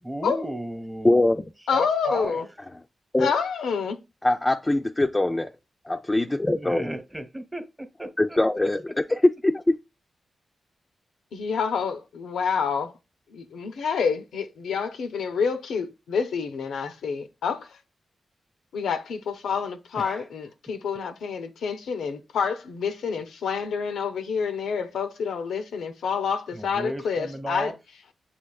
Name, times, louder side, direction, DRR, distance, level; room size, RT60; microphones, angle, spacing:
voice 1, 0.0-1.3 1.7-2.4 6.6-8.7 19.9-20.3 26.5-27.7, right 1 dB, 20° right, 1.0 m, -34 dB
voice 2, 1.0-1.3 2.7-2.8 3.1-3.3 4.2-5.5 5.9-6.9 8.2-9.7, left 1 dB, 20° left, 0.3 m, -22 dB
voice 3, 1.7-2.5 3.2-4.0 11.3-12.9 13.3-17.7 18.7-27.7, left 6 dB, 90° left, 0.5 m, -28 dB
6.9 x 2.8 x 2.3 m
cardioid pair, 50°, 0 cm